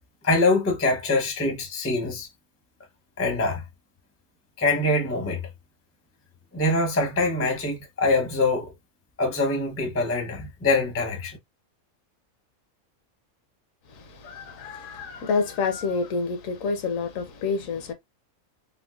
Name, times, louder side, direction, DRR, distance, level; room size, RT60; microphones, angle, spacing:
voice 1, 0.2-2.3 3.2-3.6 4.6-5.4 6.5-8.7 9.2-11.4, left 2 dB, 15° left, 0.5 m, -24 dB
voice 2, 13.9-17.9, left 4 dB, 70° left, 1.0 m, -28 dB
3.6 x 2.1 x 2.3 m
omnidirectional pair, 1.5 m